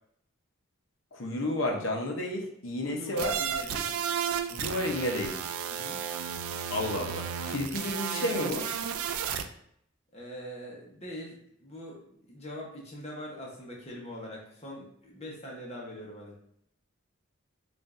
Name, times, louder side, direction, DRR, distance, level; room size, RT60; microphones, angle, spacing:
voice 1, 1.1-3.3 4.5-5.4 6.7-8.7, left 1 dB, 65° left, 1 dB, 0.7 m, -31 dB
voice 2, 2.8-3.9 5.7-6.0 10.1-16.4, equal, 30° left, -3 dB, 0.9 m, -42 dB
sound 1, 3.2-9.4, right 8 dB, 80° right, 0.3 m, -33 dB
5.1 x 2.5 x 2.5 m, 0.70 s
head